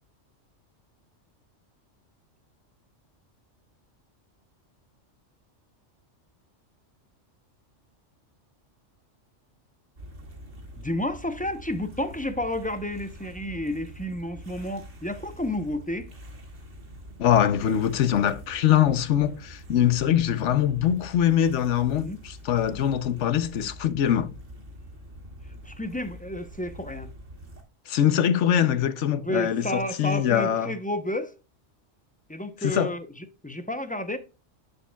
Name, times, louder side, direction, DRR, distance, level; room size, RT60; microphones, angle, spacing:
sound 1, 10.0-27.6, equal, 65° right, 2.4 m, -45 dB
voice 1, 10.8-16.1 21.9-22.2 25.6-27.1 29.2-31.3 32.3-34.2, left 1 dB, 10° left, 0.4 m, -31 dB
voice 2, 17.2-24.3 27.9-30.7 32.6-32.9, left 10 dB, 75° left, 1.0 m, -23 dB
11.0 x 5.3 x 2.2 m
omnidirectional pair, 1.3 m